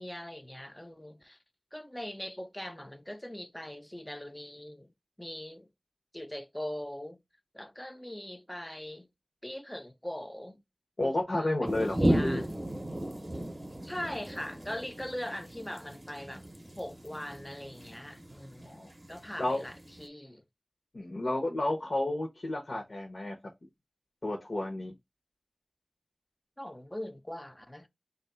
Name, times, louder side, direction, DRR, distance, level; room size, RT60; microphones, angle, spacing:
voice 1, 0.0-1.4 1.7-4.9 5.2-5.7 6.1-7.2 7.5-9.1 9.4-10.6 11.0-12.6 13.8-16.5 16.8-20.4 26.6-27.9, left 1 dB, 15° left, 0.5 m, -41 dB
voice 2, 11.0-12.4 18.6-18.9 19.4-19.6 20.9-23.4 24.2-24.9, left 1 dB, 70° left, 0.9 m, -31 dB
sound 1, 11.6-20.1, right 1 dB, 30° right, 0.7 m, -35 dB
3.1 x 2.6 x 4.4 m
wide cardioid pair, 50°, 0 cm